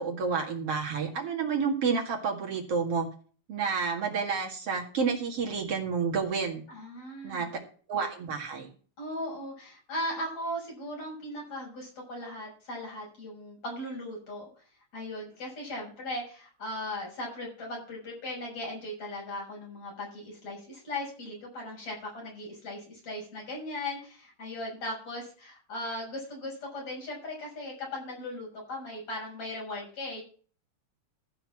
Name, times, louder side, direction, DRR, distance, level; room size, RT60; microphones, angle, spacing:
voice 1, 0.0-3.1 3.5-6.6 7.2-7.6 7.9-8.7, right 5 dB, 55° right, 1 dB, 2.9 m, -30 dB
voice 2, 6.7-7.5 9.0-14.5 14.9-30.2, left 1 dB, 65° left, -2 dB, 7.8 m, -38 dB
14.5 x 5.7 x 7.4 m, 0.42 s
omnidirectional pair, 3.3 m